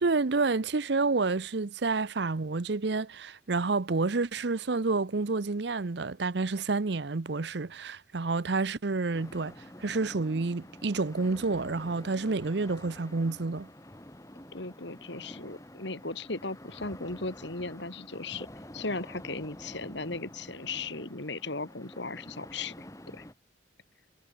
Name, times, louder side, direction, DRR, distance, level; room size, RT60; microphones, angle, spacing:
voice 1, 0.0-9.5 9.8-13.7, right 3 dB, 60° right, 0.7 m, -29 dB
sound 1, 9.1-23.3, left 1 dB, 15° left, 2.6 m, -48 dB
voice 2, 14.5-18.5 18.7-23.3, left 3 dB, 65° left, 2.8 m, -37 dB
head